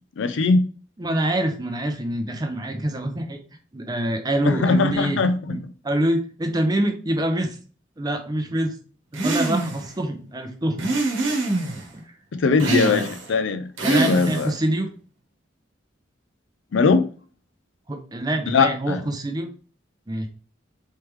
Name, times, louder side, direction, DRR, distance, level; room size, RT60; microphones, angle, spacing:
voice 1, 0.2-0.7 4.4-5.4 12.3-14.5 16.7-17.0 18.5-19.0, left 4 dB, 75° left, 0.4 m, -20 dB
voice 2, 1.0-3.4 3.7-5.2 5.5-5.6 5.8-7.6 8.0-8.7 9.2-10.9 11.9-12.0 12.6-13.0 13.8-14.9 17.9-19.5 20.1-20.3, right 1 dB, 20° right, 0.5 m, -25 dB
sound 1, 9.1-9.9 10.8-11.8 12.6-13.3 13.8-14.6, right 2 dB, 85° right, 1.1 m, -24 dB
3.3 x 3.2 x 3.1 m
head